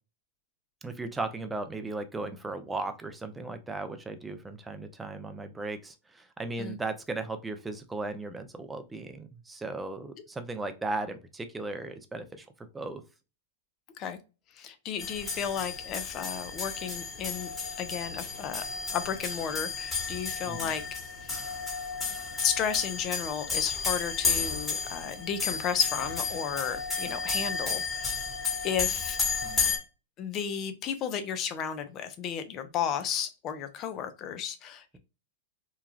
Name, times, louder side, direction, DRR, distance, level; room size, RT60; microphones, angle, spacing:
voice 1, 0.8-12.5 12.7-13.0 20.5-20.7 29.4-29.6, right 3 dB, 10° right, 8 dB, 0.5 m, -36 dB
voice 2, 14.5-17.5 17.8-18.6 18.9-20.8 21.2-21.3 22.4-28.2 28.6-29.2 30.2-35.0, left 8 dB, 35° left, 9 dB, 0.6 m, -33 dB
sound 1, 15.0-29.8, left 5 dB, 20° left, 1.1 m, -32 dB
3.1 x 2.2 x 2.4 m, 0.29 s
hypercardioid pair, 115°, 0 cm